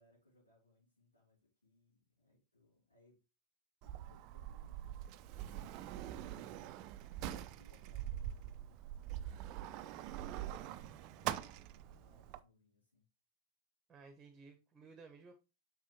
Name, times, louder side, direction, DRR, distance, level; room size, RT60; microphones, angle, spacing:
voice 1, 0.0-3.2 3.8-10.5 11.1-13.1, left 2 dB, 85° left, -5 dB, 3.9 m, -71 dB
Sliding door, 3.8-12.4, right 12 dB, 40° right, 0.5 m, -44 dB
voice 2, 13.9-15.3, right 4 dB, 20° right, 6 dB, 1.3 m, -56 dB
7.4 x 5.6 x 2.9 m, 0.28 s
figure-of-eight pair, 95°, 0 cm